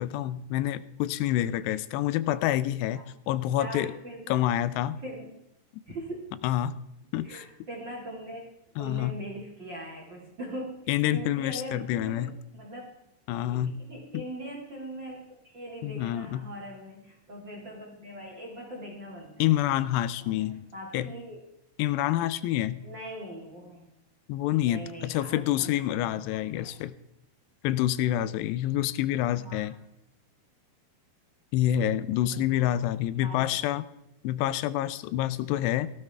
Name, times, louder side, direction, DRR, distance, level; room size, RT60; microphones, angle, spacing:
voice 1, 0.0-3.9 4.3-5.0 6.4-6.8 7.1-7.5 8.8-9.2 10.9-12.3 13.3-13.8 14.1-14.2 15.8-16.5 19.4-20.7 20.9-21.1 21.8-22.8 24.3-26.9 27.6-29.8 31.5-33.9 34.2-35.9, left 13 dB, 85° left, 15 dB, 2.7 m, -27 dB
voice 2, 3.6-4.4 5.0-5.3 5.9-6.3 7.2-8.5 8.8-10.7 11.1-12.8 13.5-19.5 20.2-21.4 22.8-23.9 24.7-26.8 29.3-29.7 32.2-32.8 33.2-33.7, right 1 dB, 35° right, -2 dB, 1.9 m, -41 dB
17.0 x 12.5 x 3.4 m, 0.86 s
omnidirectional pair, 4.8 m